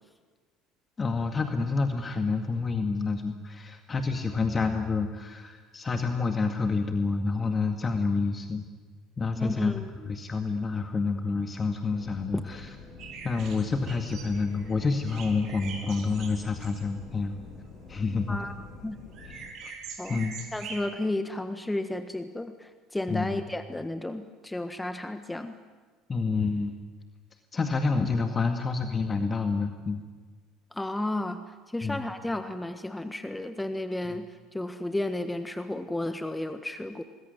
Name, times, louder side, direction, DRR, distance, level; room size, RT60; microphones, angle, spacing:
voice 1, 1.0-8.7 9.2-9.7 10.1-12.7 13.2-17.4 17.9-18.4 19.6-19.7 20.1-20.4 23.1-23.4 26.1-26.7 27.5-30.0 31.8-32.0, left 4 dB, 30° left, 5 dB, 2.0 m, -28 dB
voice 2, 9.4-9.9 12.3-12.4 18.3-18.5 18.8-19.0 20.0-20.2 20.5-25.6 30.7-37.0, left 1 dB, 10° left, 9 dB, 1.5 m, -33 dB
sound 1, 11.8-19.5, left 4 dB, 55° left, 7.0 m, -47 dB
sound 2, 13.0-20.8, right 5 dB, 55° right, 4.4 m, -44 dB
25.5 x 21.0 x 9.5 m, 1.4 s
figure-of-eight pair, 60°, 0 cm